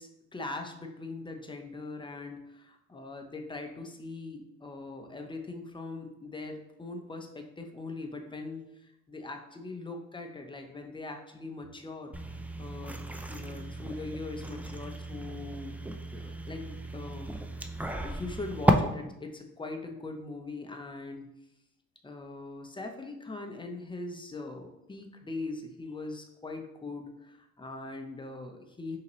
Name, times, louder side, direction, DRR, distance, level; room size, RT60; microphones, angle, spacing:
voice 1, 0.0-12.2 12.6-13.0 13.3-15.8 16.1-17.4 18.0-21.3 22.0-29.0, left 3 dB, 15° left, 4 dB, 0.7 m, -41 dB
sound 1, 12.1-18.7, right 1 dB, 5° right, 0.3 m, -33 dB
5.6 x 2.9 x 3.1 m, 0.86 s
cardioid pair, 90°, 30 cm